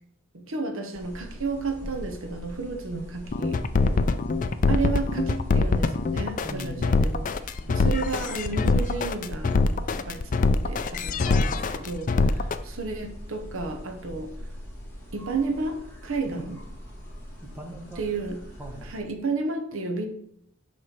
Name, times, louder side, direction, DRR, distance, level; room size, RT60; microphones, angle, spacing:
voice 1, 0.3-3.6 4.7-7.3 7.7-11.3 11.7-14.3 15.1-16.6 18.0-18.5 18.8-20.1, right 3 dB, 65° right, 4 dB, 0.9 m, -32 dB
sound 1, 0.9-19.0, equal, 10° left, 2.1 m, -42 dB
sound 2, 3.3-12.6, left 3 dB, 35° left, 0.4 m, -23 dB
voice 2, 3.7-4.2 6.4-7.0 11.2-11.8 16.3-16.4 17.5-18.0 18.6-18.9, right 1 dB, 10° right, 0 dB, 1.1 m, -39 dB
8.0 x 3.3 x 5.9 m, 0.70 s
head